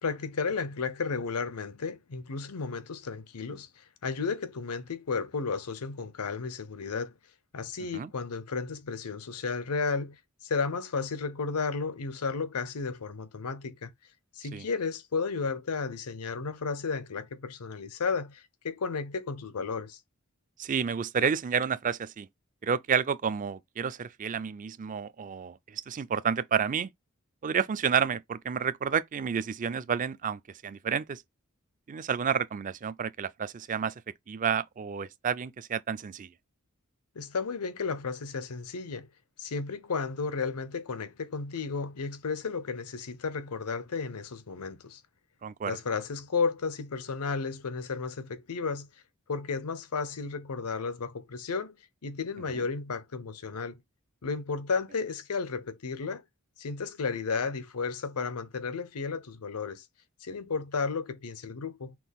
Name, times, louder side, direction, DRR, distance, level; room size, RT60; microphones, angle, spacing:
voice 1, 0.0-7.1 7.5-13.9 14.3-20.0 37.1-39.1 39.4-45.0 45.7-48.9 49.3-51.8 52.0-53.8 54.2-56.2 56.6-59.9 60.2-62.0, left 4 dB, 85° left, 0.7 m, -33 dB
voice 2, 20.6-22.3 22.6-26.9 27.4-31.2 31.9-33.9 34.3-36.3 45.4-45.8, right 7 dB, 35° right, 0.4 m, -30 dB
5.9 x 2.4 x 3.5 m
head